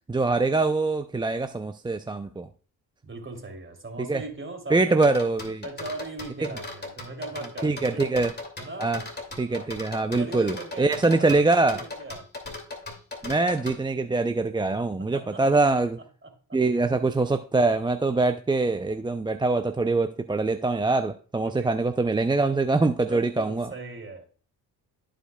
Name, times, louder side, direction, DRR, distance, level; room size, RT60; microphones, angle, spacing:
voice 1, 0.1-2.5 4.1-4.2 4.7-5.6 7.6-8.3 8.8-9.0 9.4-11.8 13.2-16.0 16.5-23.7, right 3 dB, 10° right, 8 dB, 0.4 m, -24 dB
voice 2, 3.0-5.1 5.6-8.1 8.6-8.9 9.5-9.7 10.1-12.3 15.0-15.4 16.0-16.6 18.1-18.2 21.4-21.7 23.1-24.3, right 3 dB, 30° right, 4 dB, 2.9 m, -39 dB
sound 1, 5.0-13.8, left 3 dB, 25° left, 2.4 m, -38 dB
13.5 x 5.1 x 2.3 m, 0.40 s
supercardioid pair, 60°, 40 cm